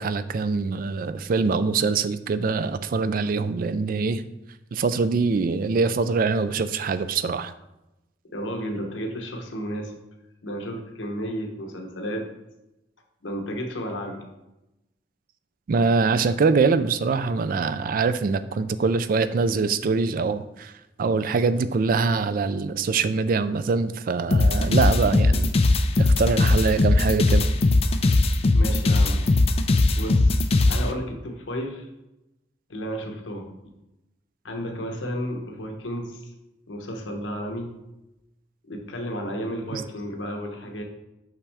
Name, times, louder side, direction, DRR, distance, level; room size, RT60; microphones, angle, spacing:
voice 1, 0.0-4.2 4.7-7.5 15.7-20.7 21.0-25.5 26.0-27.5 39.7-39.8, right 4 dB, 50° right, 12 dB, 0.3 m, -23 dB
voice 2, 8.3-9.9 10.4-12.3 13.2-14.2 28.5-29.2 30.0-31.9 32.7-33.5 34.4-36.3 36.7-37.7 38.6-40.8, equal, 85° left, 2 dB, 1.0 m, -32 dB
sound 1, 24.3-30.8, left 2 dB, 30° left, 0.4 m, -19 dB
5.8 x 5.3 x 3.5 m, 0.95 s
head